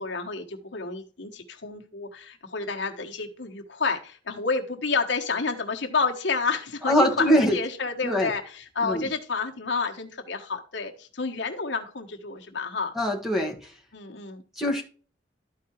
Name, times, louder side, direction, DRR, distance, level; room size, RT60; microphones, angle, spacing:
voice 1, 0.0-12.9 13.9-14.4, left 4 dB, 70° left, 1.2 m, -30 dB
voice 2, 6.9-7.6 8.0-8.3 8.8-9.1 12.9-13.6 14.6-14.8, equal, ahead, 1.4 m, -22 dB
12.5 x 4.7 x 3.0 m
head